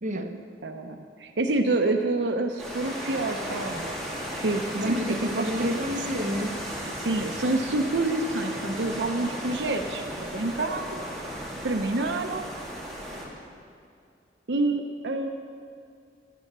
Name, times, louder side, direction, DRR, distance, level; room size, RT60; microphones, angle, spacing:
voice 1, 0.0-0.3 4.8-6.6, equal, 45° right, 4 dB, 1.1 m, -30 dB
voice 2, 0.6-3.9 4.4-5.0 5.3-5.7 7.0-12.5 14.5-15.3, right 2 dB, 75° right, 4 dB, 0.7 m, -28 dB
sound 1, 2.6-13.3, equal, ahead, 2.6 m, -35 dB
14.0 x 10.5 x 6.7 m, 2.3 s
head